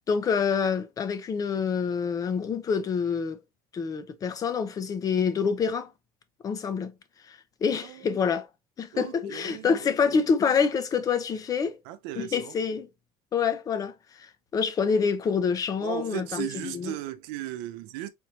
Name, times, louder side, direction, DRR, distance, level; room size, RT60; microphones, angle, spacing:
voice 1, 0.1-3.4 3.7-5.9 6.4-6.9 7.3-8.5 8.8-11.8 12.2-12.9 13.3-16.9, left 6 dB, 25° left, 0.7 m, -27 dB
voice 2, 7.7-8.1 8.9-10.2 11.8-12.6 15.8-18.1, right 14 dB, 85° right, 0.7 m, -37 dB
4.4 x 3.2 x 2.8 m
cardioid pair, 150°, 13 cm